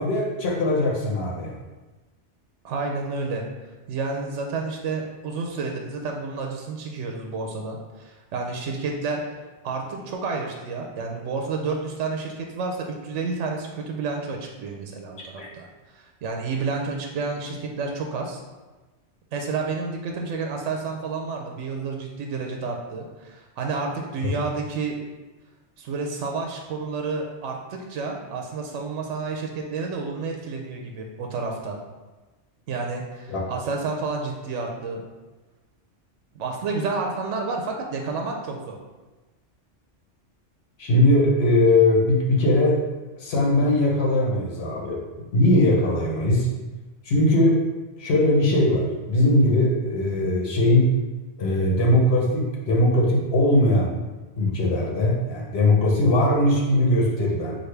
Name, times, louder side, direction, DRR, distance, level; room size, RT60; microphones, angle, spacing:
voice 1, 0.0-1.5 15.4-15.5 33.3-33.4 40.8-42.8 43.2-45.0 45.3-46.5 47.0-47.6 48.0-50.9 51.4-53.9 54.4-57.6, left 1 dB, 60° left, -2 dB, 1.2 m, -20 dB
voice 2, 2.6-3.4 3.9-9.2 9.6-15.7 15.9-18.4 19.3-25.0 25.8-31.8 32.7-35.0 36.3-38.8, right 4 dB, 80° right, 1 dB, 0.9 m, -30 dB
6.3 x 2.4 x 3.3 m, 1.2 s
omnidirectional pair, 1.2 m